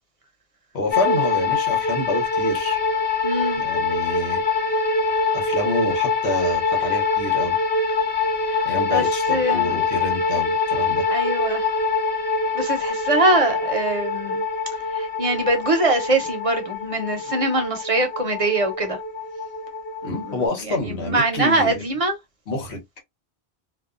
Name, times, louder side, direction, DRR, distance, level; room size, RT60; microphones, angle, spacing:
voice 1, 0.7-2.8 3.5-4.4 5.3-7.6 8.6-11.1 20.0-21.8 22.5-22.8, left 2 dB, 80° left, 1.2 m, -28 dB
sound 1, 0.9-20.5, left 4 dB, 65° left, 0.8 m, -24 dB
voice 2, 3.2-3.6 8.5-9.0 9.3-9.7 11.1-11.7 12.5-14.4 14.9-19.0 20.2-20.4 20.7-22.2, right 2 dB, 40° right, 0.6 m, -23 dB
2.5 x 2.3 x 2.4 m
omnidirectional pair, 1.1 m